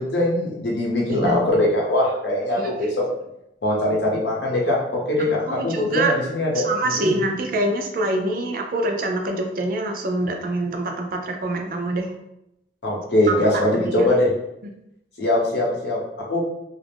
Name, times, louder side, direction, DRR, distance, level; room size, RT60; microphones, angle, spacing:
voice 1, 0.0-2.9 3.6-7.2 12.8-14.3 15.2-16.0 16.3-16.4, left 1 dB, 75° left, -3 dB, 0.8 m, -21 dB
voice 2, 5.5-6.1 6.5-12.1 13.3-13.4 13.7-14.1, right 1 dB, 50° right, 3 dB, 0.4 m, -25 dB
2.4 x 2.0 x 3.3 m, 0.83 s
head